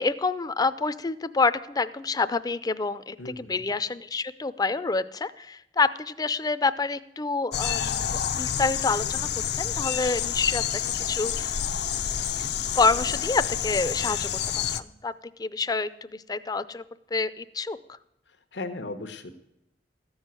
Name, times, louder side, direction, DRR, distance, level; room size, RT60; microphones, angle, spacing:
voice 1, 0.0-9.3 9.6-10.6 11.1-11.6 12.7-14.3 14.5-15.1 15.4-16.8 17.1-17.8, left 4 dB, 20° left, 14 dB, 0.5 m, -27 dB
voice 2, 3.2-3.7 18.3-19.3, left 2 dB, 90° left, 7 dB, 1.1 m, -37 dB
sound 1, 7.5-14.8, left 9 dB, 65° left, 0.6 m, -28 dB
13.5 x 6.3 x 8.9 m, 0.84 s
head